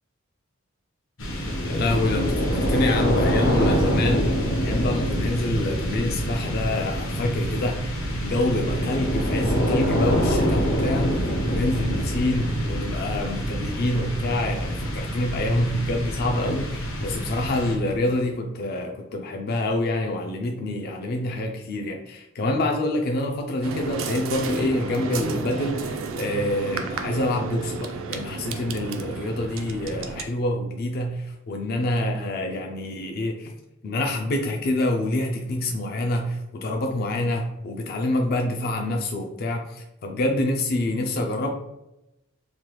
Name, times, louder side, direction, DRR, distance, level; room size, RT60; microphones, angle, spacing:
sound 1, 1.2-18.1, equal, 70° left, 0.8 m, -25 dB
voice 1, 1.6-4.3 4.6-11.2 11.5-33.5 33.8-41.5, left 1 dB, 50° left, 2 dB, 0.4 m, -26 dB
sound 2, 23.6-30.2, right 4 dB, 70° right, 0.4 m, -32 dB
3.3 x 2.2 x 2.9 m, 0.89 s
head